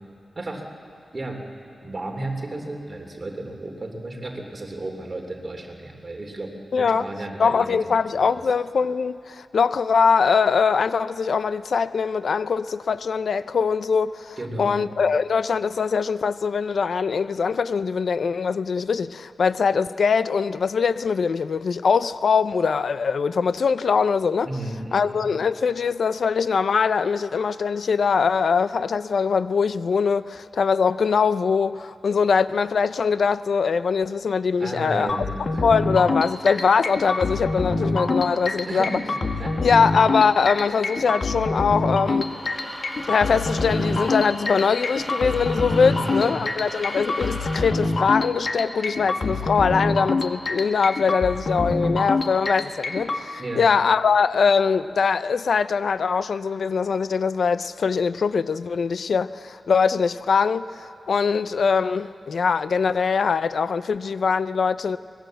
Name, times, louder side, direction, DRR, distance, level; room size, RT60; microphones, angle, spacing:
voice 1, 0.3-0.7 1.1-1.4 1.8-6.5 6.8-8.4 14.4-14.9 24.4-25.3 34.6-35.6 38.6-39.6 45.8-46.4 53.4-53.7, right 2 dB, 35° right, 3.3 m, -33 dB
voice 2, 6.7-7.0 7.4-24.5 24.9-35.2 35.6-39.0 39.6-42.3 43.1-65.0, left 5 dB, 75° left, 0.5 m, -22 dB
sound 1, 35.1-53.2, left 3 dB, 55° left, 1.8 m, -26 dB
sound 2, 42.1-47.9, equal, 15° left, 4.7 m, -38 dB
24.5 x 20.5 x 7.7 m
wide cardioid pair, 115°, 0 cm